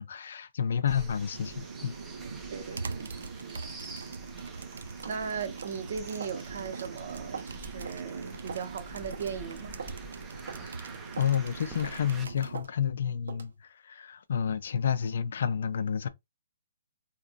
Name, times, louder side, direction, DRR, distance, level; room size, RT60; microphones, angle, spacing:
voice 1, 0.0-1.9 11.2-16.1, left 8 dB, 55° left, 0.5 m, -30 dB
sound 1, 0.9-12.2, right 2 dB, 10° right, 0.4 m, -48 dB
sound 2, 1.3-12.7, right 4 dB, 70° right, 0.5 m, -42 dB
voice 2, 2.5-3.1 5.1-9.8, right 6 dB, 45° right, 0.8 m, -37 dB
sound 3, 5.0-5.2 5.6-5.8 6.2-6.4 6.7-6.9 7.3-7.6 7.8-8.0 8.5-8.7 9.1-9.3 9.8-10.0 10.5-10.6 11.2-11.3 11.8-12.1 12.5-12.7 13.3-13.5, right 6 dB, 90° right, 1.2 m, -41 dB
3.8 x 2.9 x 2.5 m
hypercardioid pair, 170°, 0 cm